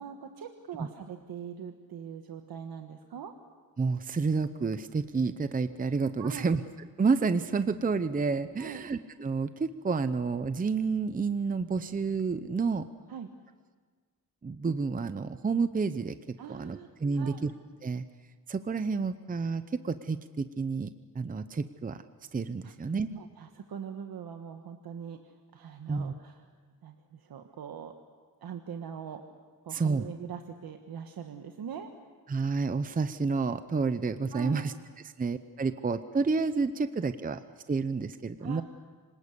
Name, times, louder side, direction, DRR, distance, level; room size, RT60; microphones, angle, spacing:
voice 1, 0.0-3.3 6.2-6.5 8.6-8.8 13.1-13.3 16.4-16.9 17.1-17.5 22.6-22.7 23.1-26.4 26.8-27.9 28.4-29.2 29.6-31.9 34.3-34.8 38.4-38.6, right 7 dB, 90° right, 5 dB, 1.4 m, -42 dB
voice 2, 3.8-6.6 7.0-12.8 14.4-16.2 16.5-17.5 17.8-18.0 18.5-22.0 22.3-23.1 25.9-26.1 29.7-30.0 32.3-34.7 35.2-37.4 37.7-38.6, right 4 dB, 25° right, 11 dB, 0.7 m, -29 dB
26.5 x 19.5 x 8.3 m, 1.5 s
wide cardioid pair, 135°, 35 cm